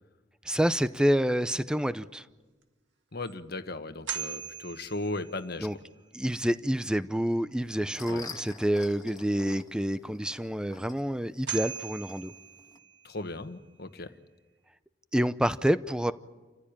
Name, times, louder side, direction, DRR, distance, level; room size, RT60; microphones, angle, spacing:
voice 1, 0.4-2.2 5.6-5.7 6.1-12.3 15.1-16.1, equal, 5° right, 13 dB, 0.6 m, -28 dB
sound 1, 2.6-2.7 3.3-3.4 4.1-5.7 10.8-10.9 11.5-13.1, right 8 dB, 70° right, 2.0 m, -39 dB
voice 2, 3.1-5.7 8.1-8.2 13.0-14.1, left 2 dB, 60° left, 9 dB, 1.3 m, -36 dB
sound 2, 7.6-12.8, left 4 dB, 20° left, 1.6 m, -48 dB
29.5 x 15.0 x 8.8 m, 1.3 s
head